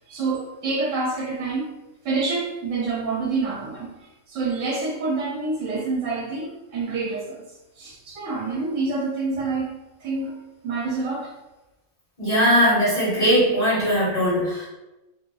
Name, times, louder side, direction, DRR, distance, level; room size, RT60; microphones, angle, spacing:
voice 1, 0.1-1.7 2.0-3.9 4.3-7.4 7.8-9.7 10.0-10.4 10.6-11.3, right 3 dB, 70° right, -2 dB, 1.0 m, -27 dB
voice 2, 12.2-14.7, equal, 30° left, -9 dB, 1.4 m, -20 dB
3.5 x 2.5 x 2.3 m, 1.0 s
omnidirectional pair, 1.4 m